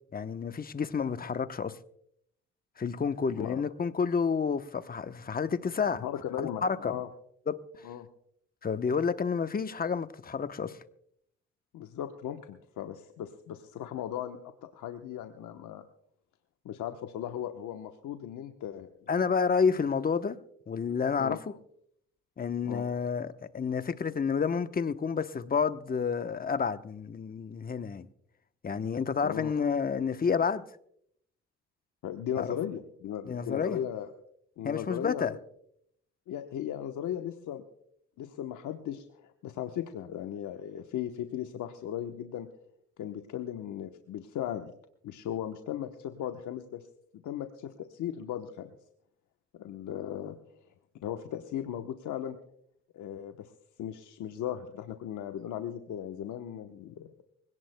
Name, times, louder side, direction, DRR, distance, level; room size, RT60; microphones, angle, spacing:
voice 1, 0.1-1.8 2.8-6.0 6.4-7.0 7.5-7.6 8.6-10.8 19.1-20.4 20.7-21.5 22.4-28.1 28.6-30.6 32.4-32.6 33.3-33.8 34.6-35.3, left 6 dB, 30° left, 0.9 m, -30 dB
voice 2, 6.0-7.1 7.8-8.1 11.7-14.4 14.7-15.8 16.6-18.9 21.2-21.4 22.6-22.9 29.2-29.5 32.0-34.1 34.6-35.4 36.3-37.6 38.2-42.5 43.0-44.7 45.0-46.9 47.2-48.7 49.5-50.4 51.0-52.4 52.9-53.5 53.8-57.2, left 10 dB, 75° left, 1.0 m, -37 dB
25.0 x 17.5 x 2.2 m
cardioid pair, 90°, 30 cm